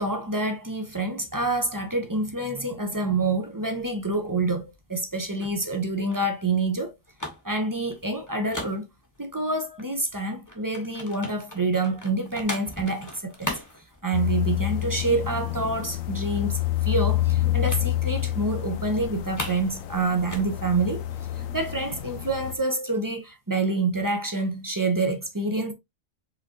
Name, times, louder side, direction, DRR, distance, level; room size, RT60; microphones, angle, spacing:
voice 1, 0.0-6.9 7.4-8.9 9.2-13.5 14.0-21.0 21.5-25.7, right 2 dB, 20° right, 0.7 m, -27 dB
sound 1, 3.6-9.4 9.8-14.7 15.0-15.2 15.5-15.6 15.9-16.7 17.7-17.9 18.2-18.4 18.7-19.7 20.0-21.7, left 1 dB, 15° left, 1.1 m, -39 dB
sound 2, 14.1-22.5, left 15 dB, 75° left, 1.0 m, -28 dB
4.9 x 3.7 x 2.8 m
omnidirectional pair, 1.4 m